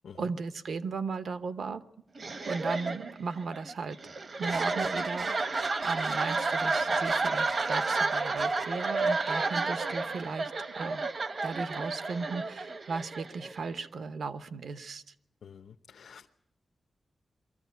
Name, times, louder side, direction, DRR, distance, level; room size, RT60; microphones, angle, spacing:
voice 1, 0.1-1.8 2.4-4.0 4.4-5.4 5.8-11.0 11.4-15.0, right 4 dB, 65° right, 11 dB, 0.9 m, -36 dB
sound 1, 2.2-13.8, right 3 dB, 40° right, 0.8 m, -31 dB
voice 2, 15.4-16.4, left 7 dB, 85° left, 4 dB, 0.8 m, -50 dB
22.5 x 14.5 x 9.3 m, 0.80 s
wide cardioid pair, 175°, 0 cm